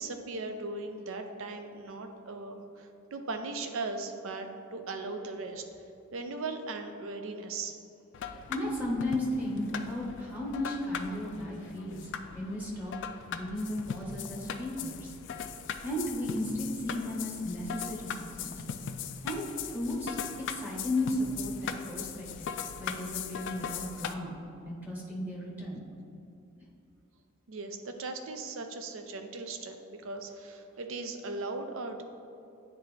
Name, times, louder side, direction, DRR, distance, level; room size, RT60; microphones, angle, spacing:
voice 1, 0.0-5.6 6.1-7.8 27.5-32.0, right 3 dB, 70° right, 6 dB, 0.5 m, -38 dB
sound 1, 8.1-24.1, left 7 dB, 60° left, 0.3 m, -40 dB
voice 2, 8.5-12.9 13.3-15.1 15.8-18.6 19.2-20.2 20.5-24.4 24.6-25.8, left 1 dB, 10° right, -4 dB, 0.9 m, -35 dB
9.5 x 3.5 x 3.2 m, 2.7 s
head